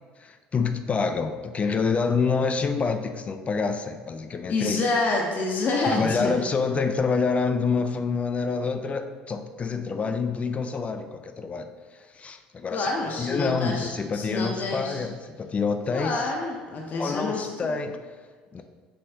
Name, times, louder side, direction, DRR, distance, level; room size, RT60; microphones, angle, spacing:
voice 1, 0.2-4.8 5.9-12.9 13.2-16.2 17.0-18.0 18.5-18.6, left 5 dB, 30° left, 7 dB, 0.4 m, -27 dB
voice 2, 4.5-6.3 12.7-15.0 15.9-17.8, left 3 dB, 45° left, -1 dB, 0.8 m, -28 dB
5.6 x 3.2 x 2.7 m, 1.5 s
hypercardioid pair, 70°, 4 cm